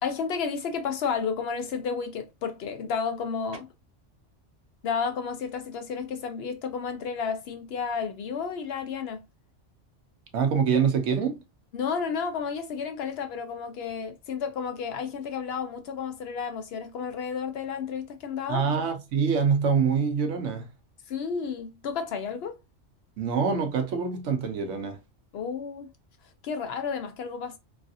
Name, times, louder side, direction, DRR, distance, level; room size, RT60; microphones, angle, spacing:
voice 1, 0.0-3.7 4.8-9.2 11.7-18.6 21.1-22.6 25.3-25.9 26.4-27.6, left 6 dB, 65° left, 0.7 m, -32 dB
voice 2, 10.3-11.4 18.5-20.7 23.2-25.0, right 6 dB, 85° right, 1.0 m, -25 dB
3.2 x 2.4 x 2.6 m
omnidirectional pair, 1.2 m